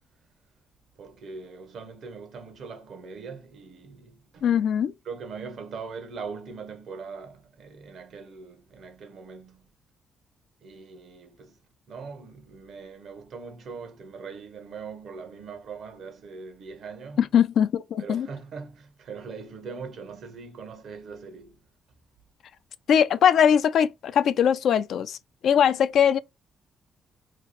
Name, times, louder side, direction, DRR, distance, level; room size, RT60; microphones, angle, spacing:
voice 1, 1.0-4.5 5.0-9.7 10.6-11.6 11.9-17.2 18.0-21.6, right 5 dB, 70° right, 0.8 m, -41 dB
voice 2, 4.4-4.9 17.2-18.3 22.9-25.2 25.4-26.2, left 8 dB, 70° left, 0.3 m, -21 dB
2.9 x 2.4 x 4.2 m
cardioid pair, 70°, 0 cm